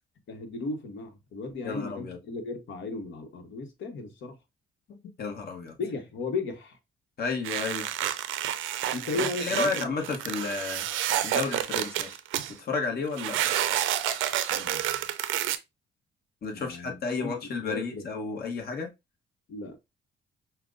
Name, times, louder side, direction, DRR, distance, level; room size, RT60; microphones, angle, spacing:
voice 1, 0.3-4.4 5.8-6.8 8.9-10.1 14.5-15.1 16.5-18.1 19.5-19.8, left 3 dB, 70° left, 1.1 m, -36 dB
voice 2, 1.6-2.2 4.9-5.7 7.2-7.9 9.4-10.9 11.2-12.2 12.6-13.4 16.4-18.9, left 4 dB, 50° left, 1.1 m, -32 dB
sound 1, 7.4-12.5 13.2-15.6, right 11 dB, 80° right, 0.5 m, -29 dB
5.7 x 2.2 x 2.5 m
cardioid pair, 90°, 20 cm